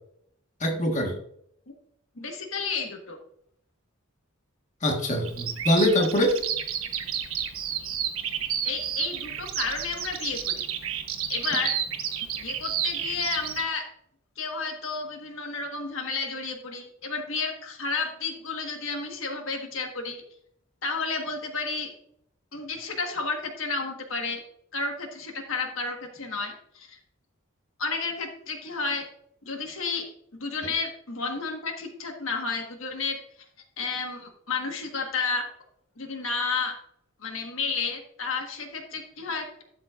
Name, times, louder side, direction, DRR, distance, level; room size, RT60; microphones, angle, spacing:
voice 1, 0.6-1.2 4.8-6.4, left 1 dB, 35° left, 2 dB, 1.4 m, -23 dB
voice 2, 2.2-3.2 8.6-10.7 11.3-11.7 12.3-13.9 14.4-20.2 20.8-21.9 22.5-24.4 24.7-27.0 27.8-29.0 29.4-30.0 30.3-33.2 33.8-35.5 36.0-36.7 37.2-39.6, left 4 dB, 70° left, 4 dB, 1.4 m, -31 dB
Bird vocalization bird call bird song, 5.2-13.6, right 9 dB, 80° right, 1.1 m, -31 dB
12.5 x 7.3 x 2.4 m, 0.70 s
head